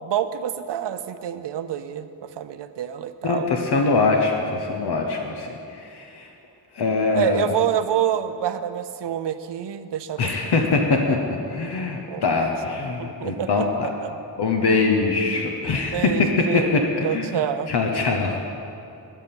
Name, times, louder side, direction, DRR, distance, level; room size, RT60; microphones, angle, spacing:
voice 1, 0.0-3.5 7.1-10.3 12.0-12.2 12.8-13.7 14.0-14.1 15.9-17.7, right 10 dB, 75° right, 11 dB, 0.6 m, -27 dB
voice 2, 3.2-6.3 6.7-7.5 10.2-11.2 11.5-13.7 14.4-18.4, left 3 dB, 70° left, 2 dB, 0.9 m, -23 dB
12.0 x 5.8 x 6.9 m, 2.7 s
wide cardioid pair, 150°, 42 cm